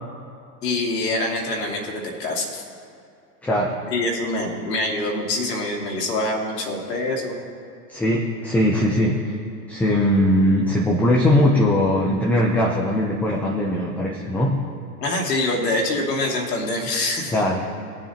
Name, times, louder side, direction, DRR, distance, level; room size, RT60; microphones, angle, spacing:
voice 1, 0.6-2.6 3.9-7.3 15.0-17.4, left 2 dB, 80° left, -1 dB, 2.5 m, -25 dB
voice 2, 3.4-3.8 7.9-9.4 9.7-14.6 17.3-17.7, left 1 dB, 5° left, -2 dB, 0.3 m, -20 dB
21.0 x 7.3 x 2.8 m, 2.5 s
hypercardioid pair, 110°, 48 cm